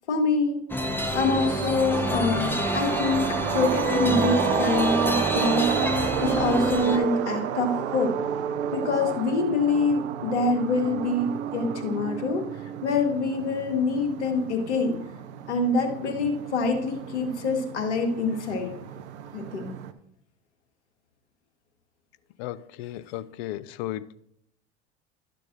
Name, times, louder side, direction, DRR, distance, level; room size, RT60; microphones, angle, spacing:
voice 1, 0.1-0.6 1.1-8.1 8.7-12.4 12.8-15.0 15.5-18.7 19.3-19.7, left 3 dB, 80° left, 1.4 m, -25 dB
sound 1, 0.7-7.0, equal, 5° left, 1.1 m, -28 dB
sound 2, 1.1-19.9, right 10 dB, 75° right, 0.6 m, -31 dB
voice 2, 22.4-24.2, left 14 dB, 65° left, 0.6 m, -35 dB
12.0 x 6.7 x 2.6 m
hypercardioid pair, 75°, 34 cm